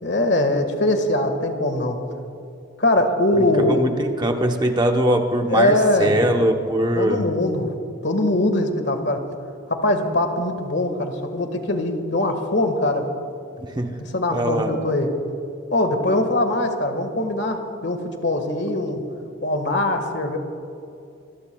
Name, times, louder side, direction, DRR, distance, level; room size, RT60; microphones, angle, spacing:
voice 1, 0.0-2.0 2.8-4.0 5.5-6.2 6.9-7.7 8.0-9.2 9.7-13.1 14.0-15.1 15.7-19.0 19.4-20.4, left 1 dB, 60° left, 1.6 m, -22 dB
voice 2, 3.4-7.3 13.6-14.0 14.3-14.8, right 1 dB, 20° right, 0.9 m, -22 dB
27.0 x 20.0 x 2.3 m
head